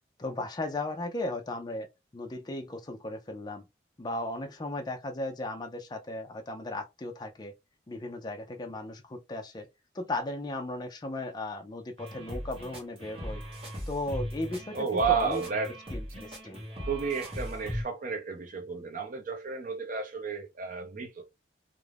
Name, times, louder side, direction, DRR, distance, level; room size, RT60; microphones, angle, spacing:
voice 1, 0.2-1.9 2.1-3.7 4.0-7.5 7.9-9.7 9.9-13.4 13.9-15.4 15.9-16.6, left 2 dB, 25° left, 0.4 m, -36 dB
sound 1, 12.0-17.8, equal, 30° right, 1.0 m, -38 dB
voice 2, 14.7-15.8 16.8-21.3, right 5 dB, 45° right, 0.6 m, -32 dB
2.4 x 2.1 x 3.3 m
head